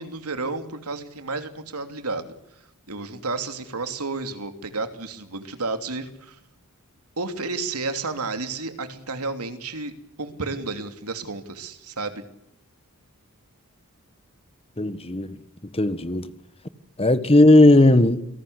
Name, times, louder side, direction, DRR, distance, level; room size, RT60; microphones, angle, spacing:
voice 1, 0.0-2.3 2.9-6.4 7.2-9.9 10.2-12.2, right 3 dB, 85° right, 2.9 m, -31 dB
voice 2, 14.8-15.4 15.7-16.3 17.0-18.2, left 1 dB, 25° left, 1.4 m, -16 dB
28.5 x 18.5 x 8.1 m
head